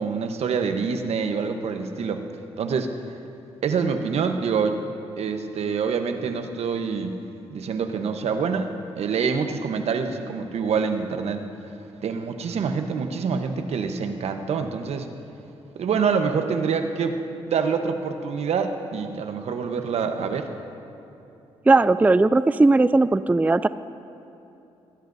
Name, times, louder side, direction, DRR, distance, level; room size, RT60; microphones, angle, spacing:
voice 1, 0.0-2.2 2.6-2.9 3.6-4.8 5.2-7.2 7.5-8.7 9.0-11.4 12.0-15.1 15.7-17.2 17.5-20.5, right 5 dB, 70° right, 6 dB, 1.1 m, -26 dB
voice 2, 21.7-23.7, right 3 dB, 15° right, 15 dB, 0.3 m, -17 dB
21.0 x 19.5 x 2.7 m, 2.9 s
supercardioid pair, 60°, 11 cm